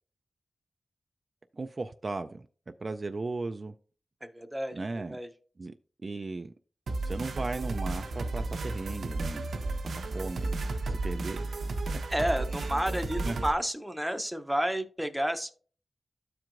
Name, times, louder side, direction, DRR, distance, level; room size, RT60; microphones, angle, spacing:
voice 1, 1.6-2.5 2.8-3.7 4.7-5.2 5.6-5.7 6.0-6.5 7.0-9.5 9.8-10.6 10.9-11.4 12.9-13.0 13.2-13.4, right 3 dB, 35° right, 0.3 m, -36 dB
voice 2, 4.2-5.3 12.1-15.5, equal, 5° right, 0.6 m, -31 dB
sound 1, 6.9-13.5, right 2 dB, 80° right, 0.8 m, -33 dB
13.5 x 4.5 x 2.5 m
wide cardioid pair, 115°, 0 cm